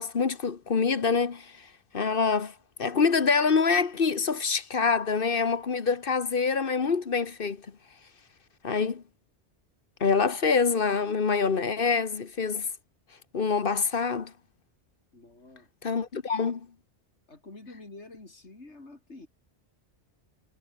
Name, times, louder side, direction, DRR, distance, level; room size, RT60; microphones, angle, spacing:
voice 1, 0.0-1.7 1.9-2.5 2.8-7.6 8.6-9.0 10.0-12.7 13.3-14.3 15.8-16.7, left 5 dB, 55° left, 1.4 m, -25 dB
voice 2, 15.1-15.7 17.3-19.3, left 2 dB, 85° left, 4.3 m, -48 dB
omnidirectional pair, 1.1 m